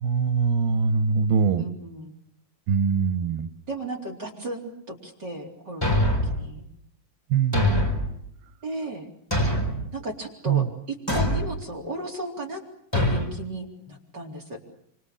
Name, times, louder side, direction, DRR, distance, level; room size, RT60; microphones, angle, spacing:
voice 1, 0.0-1.6 2.7-3.5 7.3-7.8 10.5-10.7, right 6 dB, 90° right, 10 dB, 3.3 m, -22 dB
voice 2, 1.6-2.1 3.7-6.6 8.6-9.1 9.9-12.6 12.9-14.6, right 1 dB, 30° right, 3 dB, 4.2 m, -35 dB
Thump thud, 5.8-6.4 7.5-8.1 9.3-9.9 11.1-11.5 12.9-13.3, left 1 dB, 5° left, 4.3 m, -23 dB
29.5 x 28.0 x 6.7 m, 0.68 s
omnidirectional pair, 4.1 m